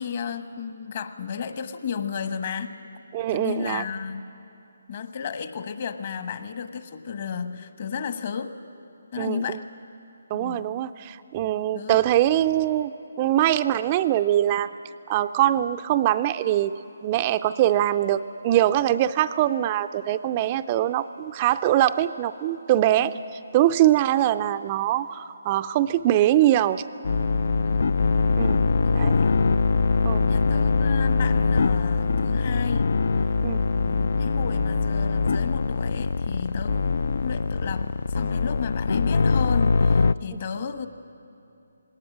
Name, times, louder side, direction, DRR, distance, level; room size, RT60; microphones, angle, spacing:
voice 1, 0.0-2.7 3.3-4.3 4.9-8.5 9.1-9.6 10.3-10.6 11.7-12.0 23.0-23.2 27.6-27.9 28.8-29.4 30.3-32.9 33.8-40.9, left 7 dB, 45° left, 8 dB, 1.4 m, -33 dB
voice 2, 3.1-3.8 9.2-9.6 10.3-14.7 15.1-16.7 17.0-23.2 23.5-26.8 28.4-28.6 28.9-29.1 30.0-30.2 33.4-33.6, right 13 dB, 25° right, 10 dB, 0.4 m, -22 dB
sound 1, 27.0-40.1, left 4 dB, 60° left, 0.4 m, -22 dB
19.5 x 18.0 x 9.9 m, 2.7 s
figure-of-eight pair, 150°, 0 cm